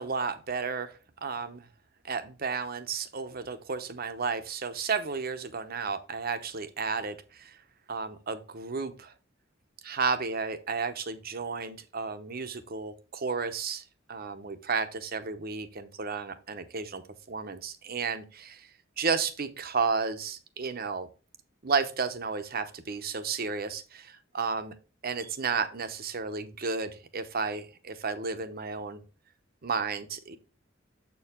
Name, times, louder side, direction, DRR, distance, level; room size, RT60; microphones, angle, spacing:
voice 1, 0.0-1.7 2.0-7.6 7.9-9.1 9.8-17.0 17.3-18.7 19.0-21.1 21.6-24.7 25.0-29.0 29.6-30.4, right 5 dB, 50° right, 10 dB, 0.8 m, -32 dB
7.4 x 4.6 x 3.7 m, 0.34 s
head